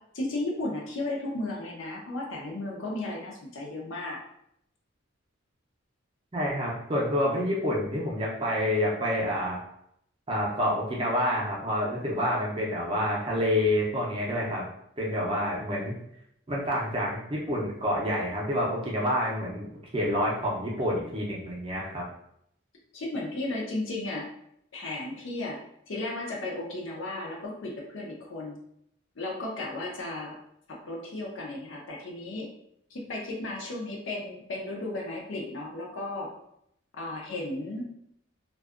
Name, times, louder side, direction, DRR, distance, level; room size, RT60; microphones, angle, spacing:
voice 1, 0.1-4.2 22.9-24.3 24.7-25.6 25.9-28.6 29.2-30.4 30.7-32.5 32.9-36.3 36.9-37.8, left 2 dB, 70° left, -2 dB, 0.5 m, -34 dB
voice 2, 6.3-9.6 10.3-14.6 15.0-16.0 16.5-22.0, equal, 25° right, -4 dB, 0.5 m, -28 dB
2.6 x 2.3 x 2.4 m, 0.74 s
head